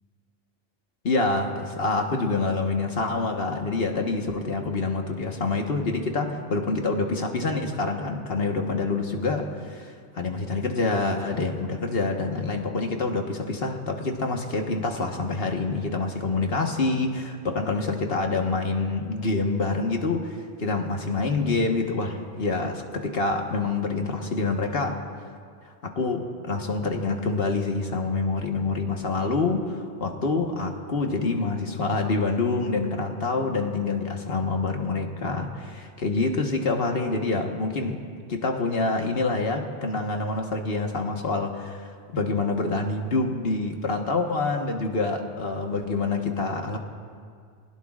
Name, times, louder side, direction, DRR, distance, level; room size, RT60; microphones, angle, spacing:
voice 1, 1.0-25.0 25.8-38.0 38.3-46.8, left 3 dB, 55° left, 3 dB, 1.5 m, -26 dB
24.5 x 19.5 x 2.5 m, 2.1 s
omnidirectional pair, 1.2 m